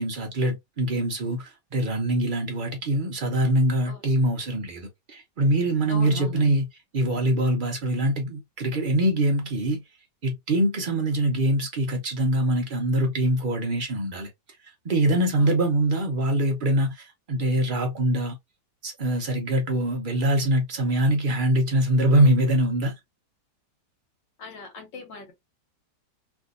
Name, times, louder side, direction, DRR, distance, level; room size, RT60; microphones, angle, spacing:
voice 1, 0.0-6.6 6.9-9.8 10.2-14.3 14.8-18.4 18.8-22.9, right 1 dB, 85° right, 0.4 m, -23 dB
voice 2, 3.8-4.2 5.9-6.5 15.4-15.5 24.4-25.3, left 4 dB, 90° left, 1.8 m, -40 dB
3.3 x 2.6 x 2.4 m
omnidirectional pair, 1.9 m